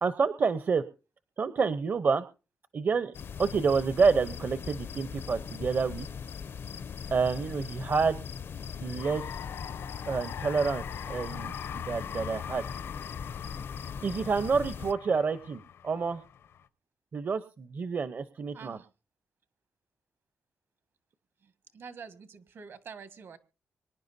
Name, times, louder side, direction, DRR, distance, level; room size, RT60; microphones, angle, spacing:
voice 1, 0.0-0.8 1.4-2.2 2.7-3.1 3.4-6.1 7.1-8.2 8.8-9.3 10.1-12.6 14.0-16.2 17.1-18.8, right 5 dB, 50° right, 12 dB, 0.8 m, -28 dB
sound 1, 3.1-14.9, left 7 dB, 60° left, 0.5 m, -40 dB
sound 2, 8.6-16.6, left 8 dB, 85° left, 0.9 m, -43 dB
voice 2, 18.5-18.9 21.4-23.4, right 6 dB, 70° right, 9 dB, 1.7 m, -47 dB
25.0 x 10.5 x 2.7 m, 0.32 s
cardioid pair, 90°, 4 cm